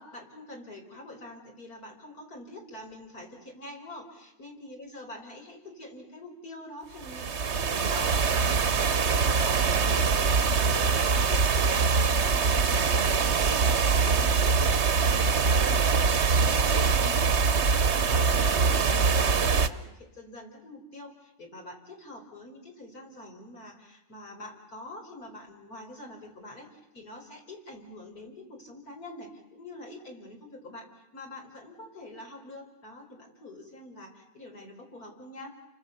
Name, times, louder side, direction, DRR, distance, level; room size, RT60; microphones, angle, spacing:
voice 1, 0.0-8.5 8.8-35.6, left 1 dB, 75° left, 0 dB, 6.0 m, -45 dB
sound 1, 7.0-19.7, right 5 dB, 50° right, 1.3 m, -23 dB
29.5 x 25.5 x 7.0 m, 0.98 s
omnidirectional pair, 1.6 m